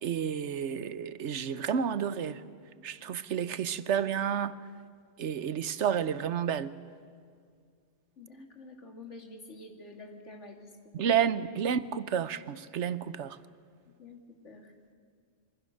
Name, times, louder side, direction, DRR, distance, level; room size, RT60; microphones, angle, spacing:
voice 1, 0.0-2.4 2.8-4.5 5.2-6.8 10.9-13.4, right 8 dB, 80° right, 1.1 m, -30 dB
voice 2, 8.2-10.7 11.0-11.2 11.5-11.6 13.9-14.7, left 2 dB, 90° left, 2.7 m, -49 dB
27.0 x 24.0 x 6.5 m
omnidirectional pair, 1.2 m